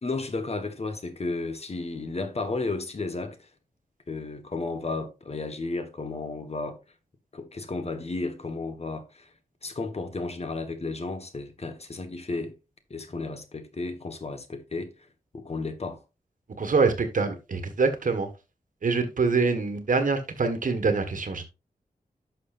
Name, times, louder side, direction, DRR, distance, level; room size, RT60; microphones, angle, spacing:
voice 1, 0.0-3.5 4.1-6.8 7.3-9.3 9.6-12.6 12.9-15.1 15.3-16.0, left 3 dB, 45° left, 1.4 m, -33 dB
voice 2, 16.6-18.3 18.8-21.5, right 4 dB, 60° right, 1.7 m, -25 dB
11.0 x 6.5 x 2.6 m
wide cardioid pair, 90°, 15 cm